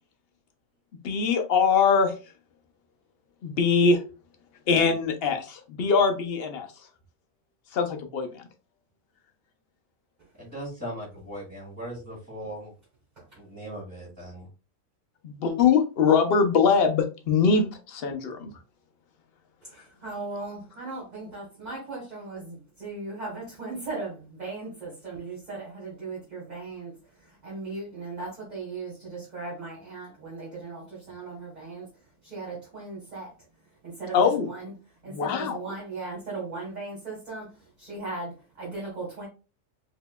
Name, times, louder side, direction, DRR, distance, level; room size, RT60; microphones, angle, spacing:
voice 1, 1.0-2.1 3.4-4.0 4.7-6.7 7.7-8.5 15.2-18.5 34.1-34.5 35.1-35.6, left 5 dB, 55° left, 5 dB, 0.8 m, -22 dB
voice 2, 10.4-12.7 13.3-14.5, right 1 dB, 15° right, -8 dB, 1.7 m, -38 dB
voice 3, 19.6-31.9 32.2-33.3 33.8-34.7 35.0-39.3, right 3 dB, 35° right, -5 dB, 1.3 m, -38 dB
4.2 x 2.8 x 2.2 m, 0.32 s
omnidirectional pair, 1.4 m